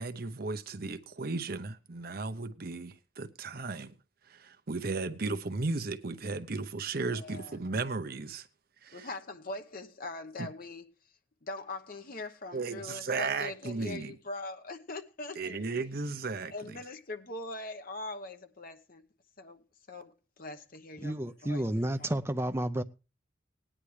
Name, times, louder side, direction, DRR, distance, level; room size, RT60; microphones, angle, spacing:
voice 1, 0.0-3.9 4.3-8.5 8.8-9.1 10.4-10.5 12.5-14.2 15.4-16.7, right 3 dB, 50° right, 0.8 m, -35 dB
voice 2, 7.0-7.6 8.9-10.9 11.4-15.6 16.5-19.1 19.4-21.2 21.4-21.6, left 2 dB, 50° left, 1.0 m, -42 dB
voice 3, 21.0-22.8, right 1 dB, 15° right, 0.5 m, -31 dB
18.0 x 10.0 x 3.3 m
head